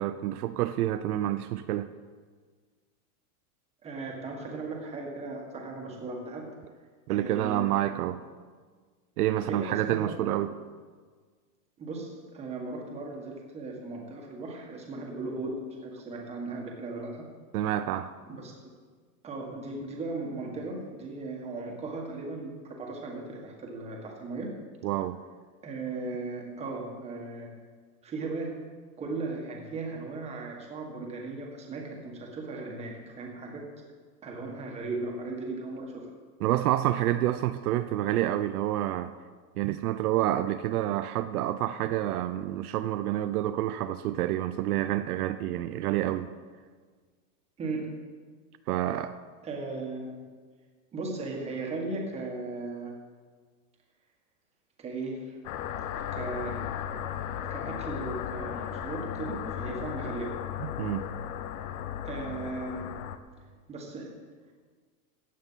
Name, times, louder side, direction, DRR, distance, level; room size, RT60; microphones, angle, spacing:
voice 1, 0.0-1.9 7.1-8.2 9.2-10.6 17.5-18.1 24.8-25.2 36.4-39.1 39.6-46.3 48.7-49.2 60.8-61.1, right 13 dB, 70° right, 10 dB, 0.7 m, -28 dB
voice 2, 3.8-6.4 7.1-7.8 9.5-10.3 11.8-17.2 18.3-18.5 19.2-24.5 25.6-27.5 28.0-28.5 29.0-33.6 34.2-36.1 47.6-47.8 49.4-50.2 50.9-52.9 54.8-55.4 56.0-56.5 57.5-60.3 62.0-62.9 63.7-64.1, right 3 dB, 15° right, 0 dB, 1.6 m, -37 dB
sound 1, 55.4-63.2, left 9 dB, 60° left, 0.9 m, -36 dB
15.0 x 9.3 x 5.7 m, 1.5 s
supercardioid pair, 180°, 47 cm